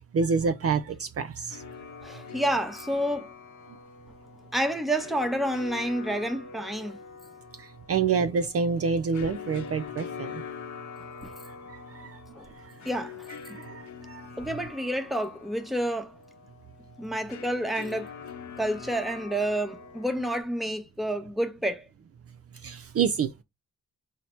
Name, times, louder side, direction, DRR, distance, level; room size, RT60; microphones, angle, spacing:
voice 1, 0.1-1.6 7.6-10.4 11.7-12.2 12.6-12.7 13.5-14.2 22.6-23.4, right 5 dB, 50° right, 0.4 m, -28 dB
sound 1, 1.5-20.4, left 7 dB, 65° left, 0.8 m, -44 dB
voice 2, 2.0-3.3 4.5-7.0 11.2-11.3 12.3-12.5 12.8-13.3 14.4-16.1 17.0-18.1 18.6-21.9, right 1 dB, ahead, 0.8 m, -29 dB
4.0 x 2.1 x 4.2 m
cardioid pair, 55°, 31 cm